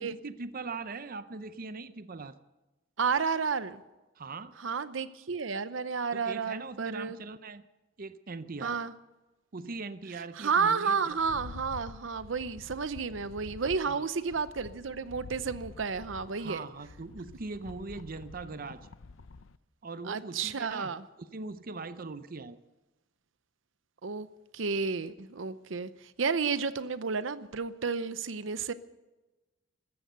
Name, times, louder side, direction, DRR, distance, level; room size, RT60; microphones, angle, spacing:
voice 1, 0.0-2.4 4.2-4.5 6.1-7.6 8.0-8.8 9.5-11.2 13.9-14.0 16.4-18.9 19.8-20.9 21.2-22.6, right 3 dB, 45° right, 0.7 m, -41 dB
voice 2, 3.0-3.8 4.6-7.2 8.6-8.9 10.3-16.6 20.1-21.0 24.0-24.3 24.5-28.7, right 5 dB, 80° right, 0.7 m, -31 dB
Rattle, 11.1-19.6, left 3 dB, 90° left, 0.6 m, -48 dB
15.0 x 14.0 x 6.7 m
head